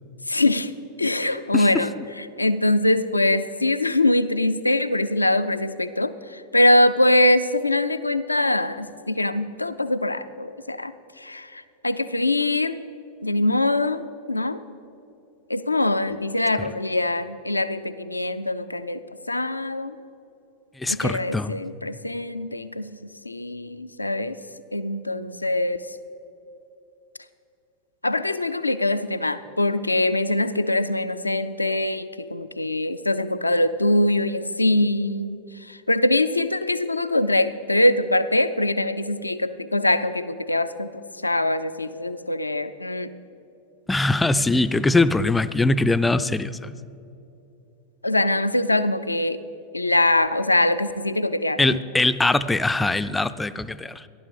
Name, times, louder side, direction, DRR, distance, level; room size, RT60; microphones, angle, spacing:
voice 1, 0.3-0.7 1.0-1.9 2.2-12.8 13.2-14.6 15.5-19.0 19.3-19.9 20.9-24.4 24.7-26.0 28.0-43.1 48.0-49.4 49.7-51.8, left 1 dB, 85° left, 12 dB, 0.4 m, -23 dB
voice 2, 1.5-2.0 16.6-16.7 20.8-21.6 43.9-46.7 51.6-54.1, left 2 dB, 10° left, 13 dB, 0.4 m, -22 dB
15.0 x 11.0 x 4.9 m, 2.8 s
figure-of-eight pair, 90°, 0 cm